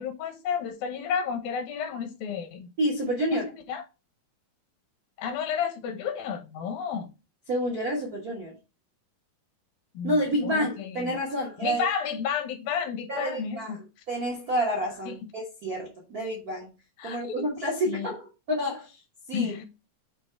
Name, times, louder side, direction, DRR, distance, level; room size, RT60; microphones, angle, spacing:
voice 1, 0.0-2.7 3.3-3.4 3.7-3.8 5.2-7.1 9.9-10.2 10.4-11.1 11.6-13.8 15.1-15.2 17.0-17.4 17.9-18.1 19.3-19.7, left 7 dB, 75° left, 2.7 m, -31 dB
voice 2, 2.8-3.5 7.5-8.6 10.0-11.9 13.1-13.8 14.1-16.7 17.0-19.0 19.3-19.5, equal, 65° right, 0.9 m, -29 dB
8.4 x 3.0 x 4.5 m
omnidirectional pair, 4.2 m